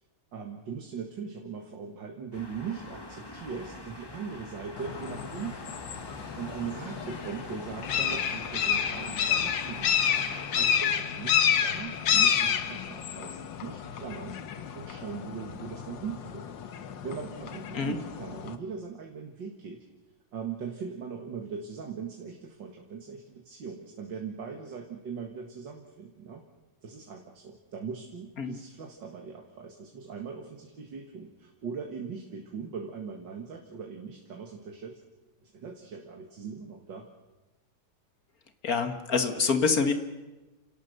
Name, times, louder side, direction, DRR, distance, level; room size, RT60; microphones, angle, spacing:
voice 1, 0.3-5.8 6.1-19.8 20.3-26.4 26.8-35.0 35.4-37.1, right 6 dB, 90° right, 2 dB, 2.4 m, -40 dB
sound 1, 2.3-11.0, left 2 dB, 15° left, 1.5 m, -44 dB
sound 2, 4.8-18.6, left 8 dB, 85° left, 1.9 m, -30 dB
voice 2, 38.6-39.9, left 5 dB, 55° left, 8 dB, 1.9 m, -26 dB
29.0 x 17.5 x 6.7 m, 1.1 s
omnidirectional pair, 1.9 m